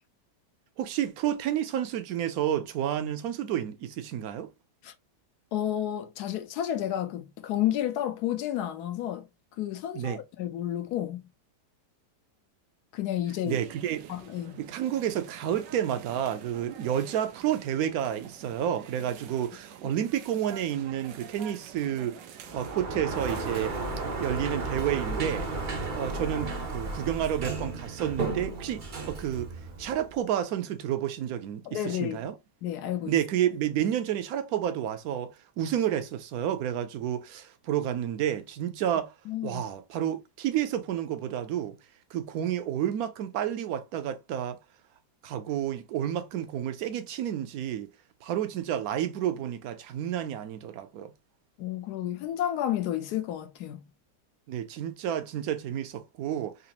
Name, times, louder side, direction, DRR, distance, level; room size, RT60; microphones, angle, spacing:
voice 1, 0.8-4.5 9.9-10.2 13.5-14.1 14.6-22.2 22.5-23.7 24.2-25.5 25.8-29.5 29.8-32.3 33.1-39.1 39.4-41.8 42.1-44.6 45.2-47.9 48.2-51.1 54.5-56.6, right 10 dB, 70° right, 1.0 m, -30 dB
voice 2, 5.5-9.3 9.6-11.2 12.9-13.6 14.1-14.6 31.7-32.3 32.6-33.2 39.3-39.6 51.6-53.8, left 11 dB, 70° left, 1.1 m, -31 dB
sound 1, 13.4-24.1, right 8 dB, 85° right, 1.3 m, -48 dB
Sliding door, 22.4-30.2, right 3 dB, 50° right, 0.6 m, -34 dB
4.0 x 2.5 x 2.8 m
omnidirectional pair, 1.8 m